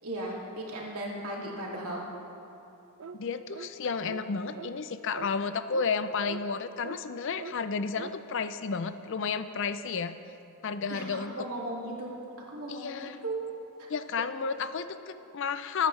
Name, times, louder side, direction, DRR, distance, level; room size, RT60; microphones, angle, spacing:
voice 1, 0.0-2.0 10.9-12.1 12.5-13.4 13.8-13.9, right 1 dB, 90° right, -3 dB, 2.3 m, -36 dB
sound 1, 3.0-3.2 3.5-3.7 4.0-4.2 4.5-4.7 5.1-5.3 5.7-5.9 6.2-6.4 6.8-7.0 7.4-7.6 7.9-8.1, right 5 dB, 65° right, 0.5 m, -42 dB
voice 2, 3.1-10.2 10.6-11.4 12.7-13.2 13.9-15.9, left 5 dB, 55° left, 11 dB, 0.5 m, -32 dB
19.5 x 9.2 x 3.2 m, 2.8 s
head